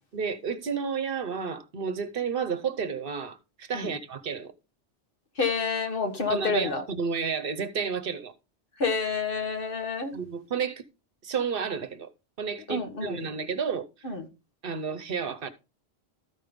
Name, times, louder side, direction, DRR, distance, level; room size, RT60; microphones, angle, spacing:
voice 1, 0.1-4.5 6.3-8.3 10.1-10.8 11.2-12.1 12.4-13.9 14.6-15.5, right 6 dB, 60° right, 1.0 m, -31 dB
voice 2, 5.4-6.8 8.8-10.1 12.7-13.2 14.0-14.3, left 4 dB, 55° left, 1.6 m, -28 dB
13.5 x 5.4 x 3.5 m
omnidirectional pair, 1.1 m